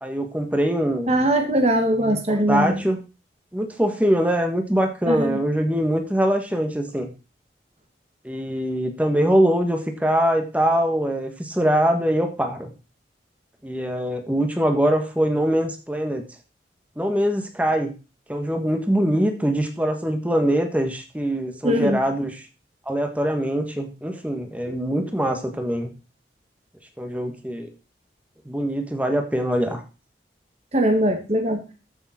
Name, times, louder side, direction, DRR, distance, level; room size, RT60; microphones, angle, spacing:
voice 1, 0.0-1.3 2.0-3.0 3.5-7.1 8.2-12.7 13.6-16.2 17.0-17.9 18.3-22.3 22.9-25.9 27.0-27.7 28.4-29.8, equal, 10° right, 5 dB, 1.5 m, -23 dB
voice 2, 1.1-2.8 5.1-5.4 21.6-22.0 24.7-25.1 30.7-31.6, right 1 dB, 35° right, 4 dB, 1.9 m, -21 dB
14.0 x 6.9 x 4.3 m, 0.32 s
head